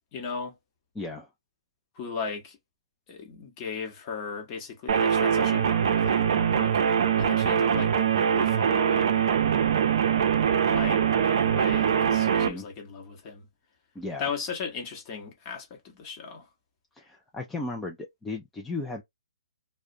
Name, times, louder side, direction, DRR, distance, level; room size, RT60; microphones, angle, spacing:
voice 1, 0.1-0.5 2.0-2.6 3.1-6.8 7.2-9.2 10.6-13.5 14.2-16.5, left 5 dB, 30° left, 0.9 m, -37 dB
voice 2, 1.0-1.3 12.3-12.7 14.0-14.3 16.9-19.0, left 2 dB, 5° left, 0.3 m, -35 dB
sound 1, 4.9-12.5, right 8 dB, 55° right, 0.5 m, -23 dB
2.3 x 2.1 x 2.6 m
hypercardioid pair, 150°, 3 cm